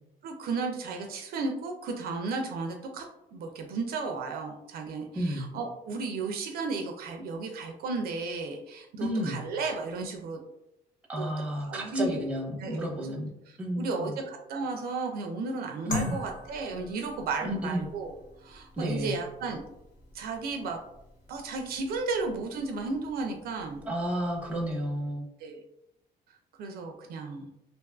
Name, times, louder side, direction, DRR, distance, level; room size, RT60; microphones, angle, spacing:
voice 1, 0.2-3.1 3.3-10.4 11.2-11.3 11.7-12.2 12.6-12.9 13.5-18.1 18.4-19.6 20.1-20.8 21.3-23.8 25.4-25.6 26.6-27.5, right 3 dB, 65° right, 3 dB, 0.4 m, -34 dB
voice 2, 5.1-5.5 9.0-9.4 11.1-13.3 13.6-14.2 15.9-16.2 17.4-17.9 18.8-19.2 23.8-25.3, equal, 10° right, -2 dB, 0.7 m, -31 dB
sound 1, 15.9-24.7, left 1 dB, 55° left, 1.0 m, -44 dB
2.5 x 2.3 x 2.3 m, 0.86 s
cardioid pair, 110°, 17 cm